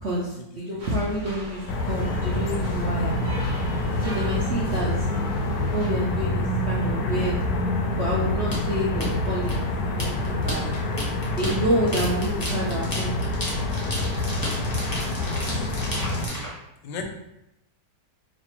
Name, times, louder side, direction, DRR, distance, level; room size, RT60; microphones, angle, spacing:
voice 1, 0.0-3.2 4.0-5.0 5.7-7.3 8.0-9.5 10.0-10.6 11.4-13.2, right 1 dB, 65° right, -6 dB, 0.6 m, -28 dB
sound 1, 0.8-5.9, equal, 35° right, 0.9 m, -39 dB
sound 2, 1.7-16.3, left 2 dB, 70° left, 0.9 m, -27 dB
sound 3, 8.5-16.5, equal, 20° left, 0.5 m, -33 dB
voice 2, 16.0-16.5 16.8-17.0, left 4 dB, 90° left, 4 dB, 1.3 m, -37 dB
3.2 x 2.5 x 4.4 m, 0.86 s
omnidirectional pair, 2.0 m